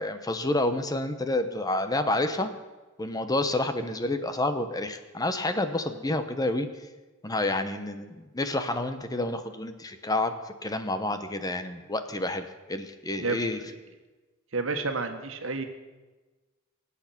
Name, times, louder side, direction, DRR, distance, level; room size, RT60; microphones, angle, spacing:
voice 1, 0.0-2.5 3.0-6.7 7.2-10.3 10.6-13.6, left 2 dB, 20° left, 9 dB, 0.9 m, -29 dB
voice 2, 14.5-15.6, right 3 dB, 75° right, 6 dB, 1.6 m, -30 dB
24.5 x 8.5 x 5.9 m, 1.2 s
head